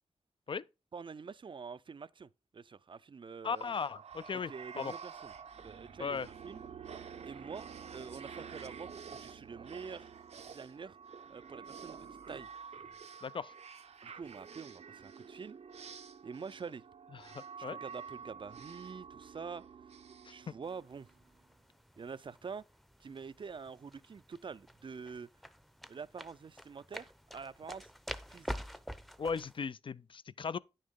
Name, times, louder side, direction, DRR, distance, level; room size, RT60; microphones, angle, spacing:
voice 1, 0.9-3.7 4.3-5.3 5.6-6.6 7.2-10.1 10.4-11.0 11.3-12.5 14.0-15.6 16.2-16.9 17.6-19.6 20.3-21.1 22.0-22.6 23.0-25.3 25.9-27.9 28.3-28.8, right 5 dB, 50° right, 0.4 m, -46 dB
voice 2, 3.4-4.9 6.0-6.3 13.2-13.5 17.1-17.8 20.2-20.3 29.2-30.6, left 5 dB, 50° left, 0.4 m, -37 dB
sound 1, 3.5-21.2, right 6 dB, 75° right, 0.7 m, -49 dB
sound 2, 20.6-29.6, equal, ahead, 0.6 m, -48 dB
9.7 x 6.5 x 3.6 m
cardioid pair, 65°, 11 cm